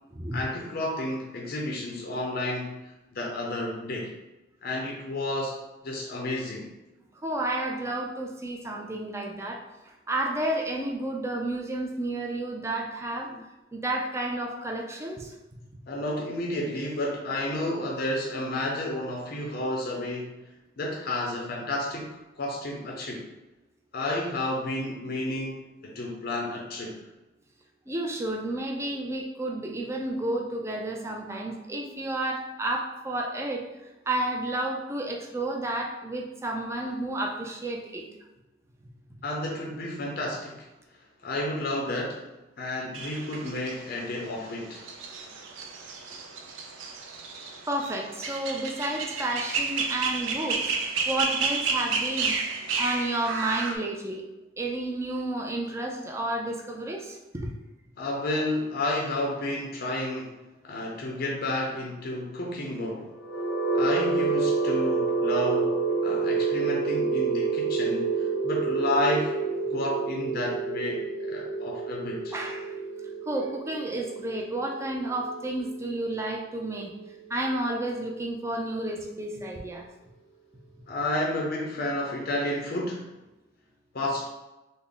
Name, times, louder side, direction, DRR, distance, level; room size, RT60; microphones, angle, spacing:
voice 1, 0.3-4.1 4.6-5.6 5.8-6.7 13.3-13.4 15.9-20.4 20.8-23.3 23.9-26.9 39.2-40.7 41.2-42.2 42.6-44.8 58.0-60.4 60.6-63.1 63.7-69.3 69.7-72.3 80.9-83.1 83.9-84.3, left 1 dB, 50° left, -2 dB, 0.5 m, -31 dB
voice 2, 7.2-13.3 13.7-15.3 27.9-33.7 34.1-38.1 47.7-52.4 52.8-54.3 54.6-57.5 72.3-72.7 73.2-76.9 77.3-79.9, right 1 dB, 15° right, 1 dB, 0.4 m, -31 dB
sound 1, 42.9-53.8, right 4 dB, 75° right, 0.5 m, -31 dB
sound 2, 63.1-77.0, right 4 dB, 90° left, 0.8 m, -28 dB
3.5 x 2.0 x 3.7 m, 1.0 s
head